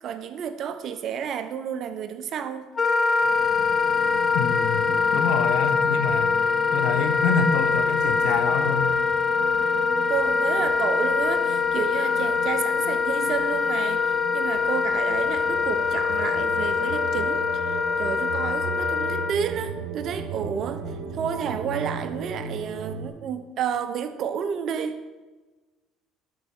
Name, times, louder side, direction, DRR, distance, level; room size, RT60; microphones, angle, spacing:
voice 1, 0.0-2.7 10.1-25.0, right 8 dB, 55° right, 10 dB, 0.8 m, -31 dB
Wind instrument woodwind instrument, 2.8-19.3, left 5 dB, 30° left, 0.6 m, -23 dB
sound 1, 3.2-23.1, right 5 dB, 80° right, 1.2 m, -37 dB
voice 2, 4.3-6.3 6.7-9.1, left 6 dB, 75° left, 9 dB, 0.9 m, -27 dB
11.5 x 4.8 x 6.0 m, 1.2 s
supercardioid pair, 90°, 0 cm